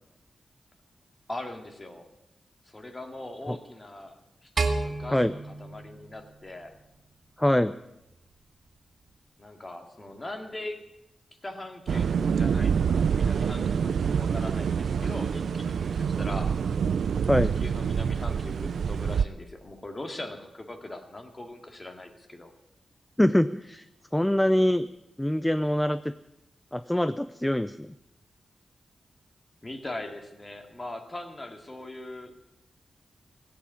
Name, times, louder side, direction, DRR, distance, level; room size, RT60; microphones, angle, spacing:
voice 1, 1.3-2.1 2.7-6.7 9.4-10.8 11.4-16.5 17.4-22.5 29.6-32.5, left 1 dB, 25° left, 5 dB, 2.3 m, -40 dB
sound 1, 4.6-6.9, right 3 dB, 60° right, 1.9 m, -31 dB
voice 2, 7.4-7.7 17.3-17.5 23.2-23.8 24.1-24.9 25.2-26.1 26.7-27.9, left 1 dB, 5° left, 12 dB, 0.5 m, -24 dB
sound 2, 11.9-19.2, right 7 dB, 85° right, 0.5 m, -26 dB
16.5 x 8.7 x 9.6 m, 0.90 s
wide cardioid pair, 90°, 0 cm